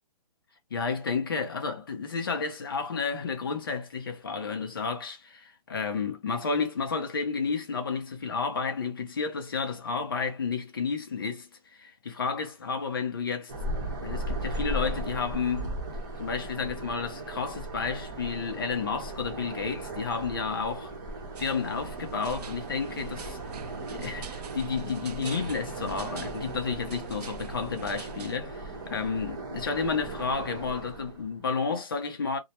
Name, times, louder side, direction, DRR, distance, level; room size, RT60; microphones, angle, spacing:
voice 1, 0.7-15.8 16.2-21.0 21.4-23.4 23.9-32.4, left 5 dB, 35° left, 0.5 m, -31 dB
sound 1, 13.5-31.4, right 2 dB, 30° right, 0.7 m, -37 dB
sound 2, 21.4-28.4, right 7 dB, 80° right, 0.5 m, -44 dB
2.2 x 2.0 x 2.8 m
hypercardioid pair, 175°, 20 cm